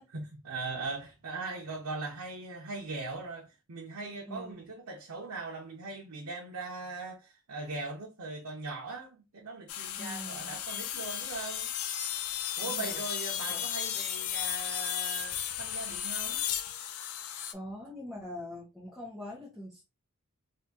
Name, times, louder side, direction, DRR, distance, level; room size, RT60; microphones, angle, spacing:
voice 1, 0.1-11.7 12.6-16.4, right 3 dB, 90° right, 0.7 m, -40 dB
voice 2, 4.3-4.7 10.0-10.6 12.6-13.0 13.5-13.6 17.5-19.8, left 1 dB, ahead, 0.8 m, -43 dB
sound 1, 9.7-17.5, left 10 dB, 80° left, 0.5 m, -35 dB
2.8 x 2.5 x 3.4 m
head